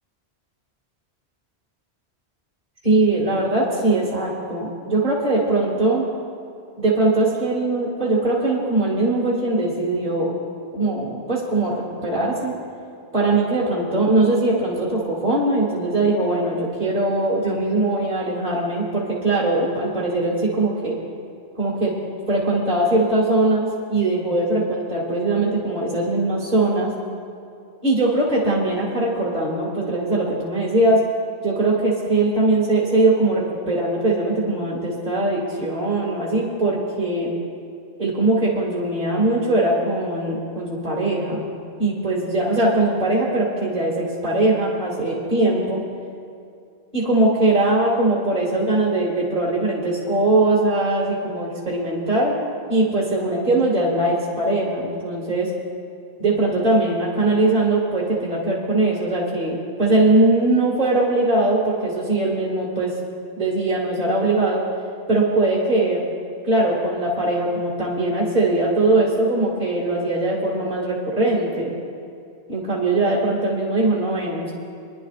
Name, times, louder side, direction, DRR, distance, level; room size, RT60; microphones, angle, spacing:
voice 1, 2.8-6.1 6.8-10.3 10.7-12.6 13.1-20.9 21.5-21.9 22.3-26.9 27.8-31.0 31.4-37.3 38.0-41.5 41.8-45.8 46.9-52.3 52.7-55.5 56.2-62.9 63.4-64.6 65.1-66.0 66.4-71.7 72.5-74.5, right 2 dB, 45° right, -6 dB, 2.4 m, -21 dB
27.0 x 10.5 x 2.5 m, 2.4 s
omnidirectional pair, 1.1 m